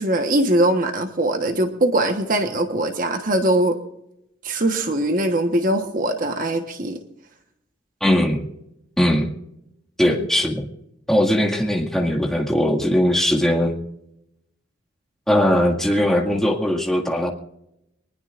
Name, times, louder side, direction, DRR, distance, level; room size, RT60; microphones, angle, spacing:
voice 1, 0.0-3.8 4.4-7.0 10.1-10.3, right 1 dB, 45° right, 5 dB, 1.2 m, -21 dB
voice 2, 8.0-8.4 9.0-9.3 10.0-10.6 11.1-13.8 15.3-17.3, equal, ahead, -2 dB, 2.0 m, -19 dB
24.0 x 20.0 x 2.5 m, 0.83 s
head